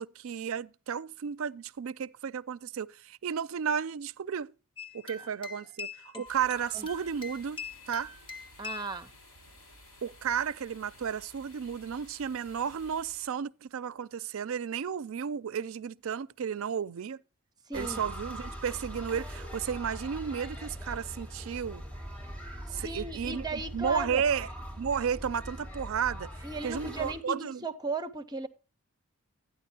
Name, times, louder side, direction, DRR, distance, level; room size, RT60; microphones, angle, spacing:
voice 1, 0.0-4.5 4.9-8.1 10.0-17.2 17.7-21.8 22.7-26.3 26.6-27.6, right 7 dB, 70° right, 0.4 m, -33 dB
sound 1, 4.8-9.0, left 5 dB, 25° left, 0.8 m, -43 dB
sound 2, 6.2-13.3, left 1 dB, 85° left, 4.8 m, -55 dB
voice 2, 8.6-9.1 17.7-18.1 22.7-24.2 26.4-28.5, right 3 dB, 20° right, 0.6 m, -36 dB
sound 3, 17.7-27.1, equal, 5° left, 3.4 m, -41 dB
12.5 x 9.7 x 2.8 m
head